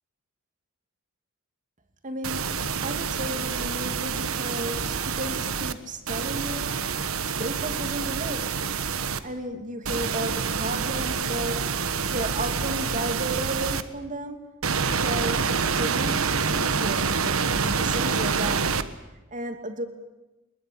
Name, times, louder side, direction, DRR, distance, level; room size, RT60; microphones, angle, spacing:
voice 1, 2.0-6.7 7.2-8.7 9.0-11.6 11.9-14.4 14.8-15.5 15.8-16.2 16.5-18.6 19.3-19.9, right 1 dB, 35° right, 6 dB, 2.7 m, -33 dB
sound 1, 2.2-5.7 6.1-9.2 9.8-13.8 14.6-18.8, right 5 dB, 65° right, 1.3 m, -27 dB
24.5 x 21.5 x 8.9 m, 1.0 s
head